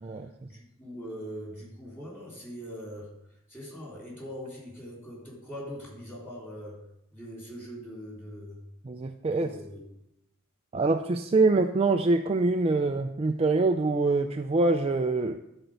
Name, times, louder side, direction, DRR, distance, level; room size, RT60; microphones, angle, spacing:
voice 1, 0.0-8.6 9.3-9.8, equal, 10° left, -4 dB, 3.5 m, -42 dB
voice 2, 8.8-9.5 10.7-15.4, right 3 dB, 25° right, 5 dB, 0.3 m, -25 dB
11.0 x 4.5 x 6.5 m, 0.82 s
head